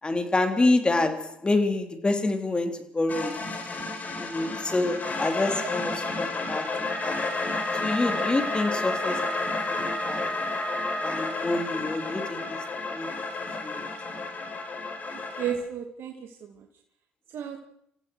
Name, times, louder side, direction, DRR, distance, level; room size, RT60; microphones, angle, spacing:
voice 1, 0.0-3.4 4.2-6.7 7.0-7.2 7.8-9.3 9.7-10.3 11.0-12.6 12.9-13.1 13.6-13.8, left 2 dB, 20° left, 6 dB, 3.5 m, -27 dB
sound 1, 3.1-15.5, left 3 dB, 40° left, 5.6 m, -32 dB
Wind instrument woodwind instrument, 6.8-11.5, equal, 5° left, 2.8 m, -33 dB
voice 2, 15.3-16.7 17.3-17.6, right 8 dB, 60° right, 2 dB, 2.4 m, -34 dB
27.5 x 15.5 x 6.4 m, 0.74 s
supercardioid pair, 70°, 4 cm